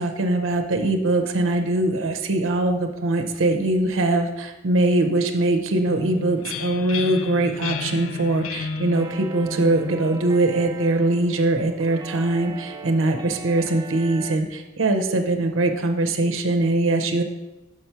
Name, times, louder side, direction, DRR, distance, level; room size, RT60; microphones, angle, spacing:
voice 1, 0.0-17.2, right 2 dB, 75° right, 6 dB, 0.6 m, -22 dB
sound 1, 5.9-11.5, left 4 dB, 85° left, 0.4 m, -34 dB
sound 2, 8.9-14.4, right 4 dB, 20° right, 0.4 m, -38 dB
6.1 x 4.5 x 5.6 m, 1.0 s
head